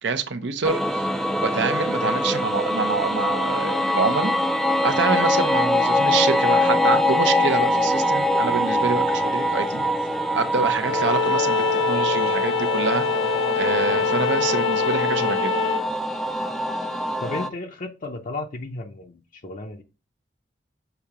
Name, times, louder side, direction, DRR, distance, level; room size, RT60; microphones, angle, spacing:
voice 1, 0.0-1.0 1.3-4.3 4.8-9.8 10.3-13.1 13.6-15.5, right 4 dB, 75° right, 0.7 m, -26 dB
sound 1, 0.6-17.5, left 1 dB, ahead, 0.4 m, -23 dB
Bowed string instrument, 10.8-15.9, left 6 dB, 85° left, 0.3 m, -24 dB
voice 2, 17.2-19.8, left 2 dB, 45° left, 0.6 m, -33 dB
7.0 x 2.8 x 4.8 m
head